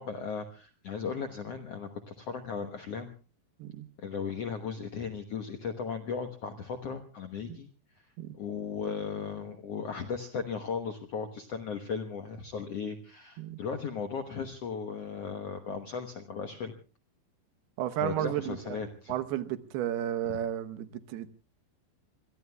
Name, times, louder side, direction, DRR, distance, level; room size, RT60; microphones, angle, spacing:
voice 1, 0.0-3.2 4.0-7.7 8.4-16.7 18.0-19.1, left 5 dB, 70° left, 1.5 m, -36 dB
voice 2, 17.8-18.8 19.1-21.3, right 12 dB, 80° right, 3.0 m, -33 dB
27.0 x 22.0 x 2.3 m
omnidirectional pair, 4.5 m